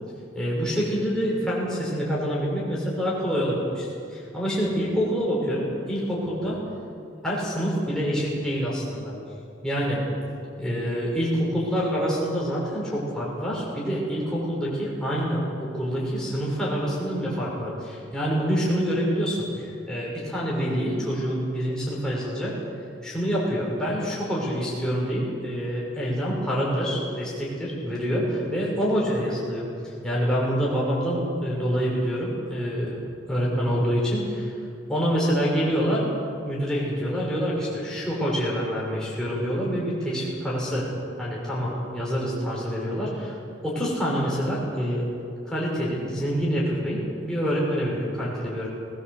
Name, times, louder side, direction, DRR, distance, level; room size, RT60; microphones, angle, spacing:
voice 1, 0.3-6.6 7.2-9.1 9.6-10.0 10.6-22.6 23.0-29.7 30.0-33.0 33.3-34.5 34.9-36.1 36.4-40.9 41.2-43.3 43.6-45.0 45.4-48.7, equal, 5° left, -6 dB, 6.2 m, -26 dB
21.0 x 18.0 x 8.1 m, 2.6 s
head